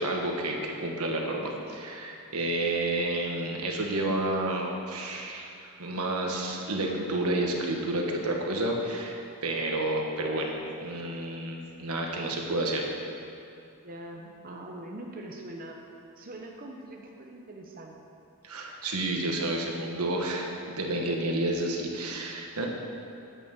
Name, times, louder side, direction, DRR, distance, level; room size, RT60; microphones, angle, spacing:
voice 1, 0.0-12.8 18.4-22.7, right 1 dB, 85° right, 1 dB, 1.5 m, -30 dB
voice 2, 13.8-15.8 16.2-18.0, right 1 dB, 40° right, 0 dB, 0.9 m, -42 dB
9.2 x 9.2 x 6.5 m, 2.6 s
head